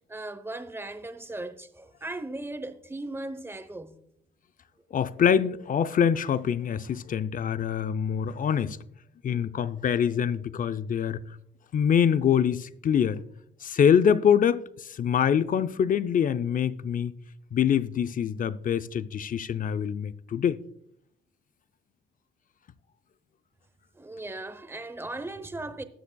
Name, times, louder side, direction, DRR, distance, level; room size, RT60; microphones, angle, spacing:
voice 1, 0.1-4.0 23.9-25.8, right 2 dB, 10° right, 0.9 m, -37 dB
voice 2, 4.9-8.8 9.2-11.2 11.7-13.2 13.6-17.1 17.5-20.6, left 8 dB, 45° left, 0.5 m, -24 dB
20.0 x 6.8 x 2.3 m
cardioid pair, 90°, 20 cm